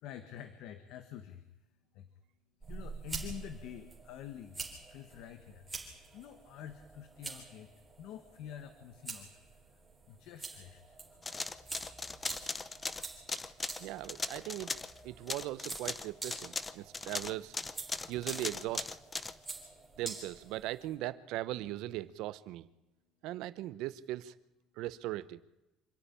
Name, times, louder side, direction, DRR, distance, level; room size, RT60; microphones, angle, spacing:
voice 1, 0.0-1.4 1.9-2.1 2.7-4.6 4.9-5.7 6.1-7.7 8.0-9.3 10.1-11.0, left 10 dB, 65° left, 10 dB, 1.3 m, -47 dB
sound 1, 2.6-21.0, right 3 dB, 10° right, 3.7 m, -47 dB
sound 2, 11.2-15.0 15.3-19.3, left 3 dB, 15° left, 0.7 m, -38 dB
voice 2, 13.8-14.8 15.0-17.5 18.1-18.9 20.0-22.7 23.2-24.3 24.8-25.4, right 15 dB, 65° right, 16 dB, 0.8 m, -39 dB
26.0 x 10.0 x 10.0 m, 0.96 s
cardioid pair, 160°, 0 cm